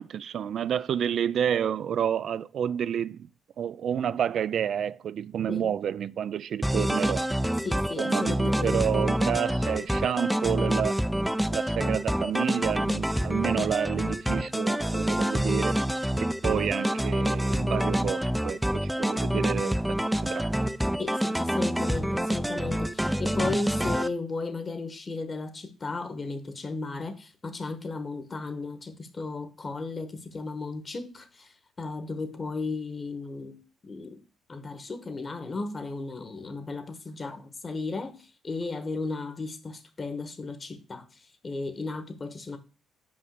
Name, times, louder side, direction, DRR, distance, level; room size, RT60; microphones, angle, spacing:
voice 1, 0.0-3.2 3.6-7.2 8.0-11.0 11.5-15.8 16.2-20.5, right 9 dB, 65° right, 0.3 m, -29 dB
sound 1, 6.6-24.1, equal, ahead, 0.5 m, -27 dB
voice 2, 7.6-8.9 21.0-34.2 34.5-42.6, left 3 dB, 35° left, 1.3 m, -35 dB
5.5 x 5.4 x 6.6 m
cardioid pair, 90°, 0 cm